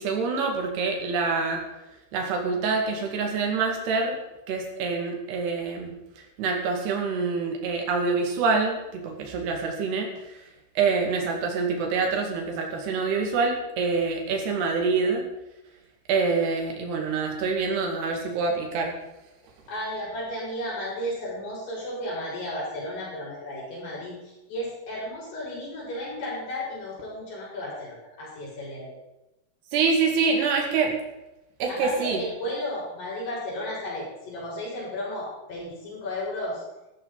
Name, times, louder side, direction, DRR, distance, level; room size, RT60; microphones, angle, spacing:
voice 1, 0.0-1.6 2.1-4.2 4.5-5.9 6.4-10.1 10.8-15.2 16.1-19.0 29.7-30.9 31.6-32.2, right 4 dB, 80° right, 2 dB, 4.3 m, -26 dB
voice 2, 19.7-28.9 31.7-36.6, left 1 dB, 75° left, -6 dB, 8.7 m, -34 dB
15.0 x 14.5 x 4.1 m, 0.96 s
omnidirectional pair, 4.7 m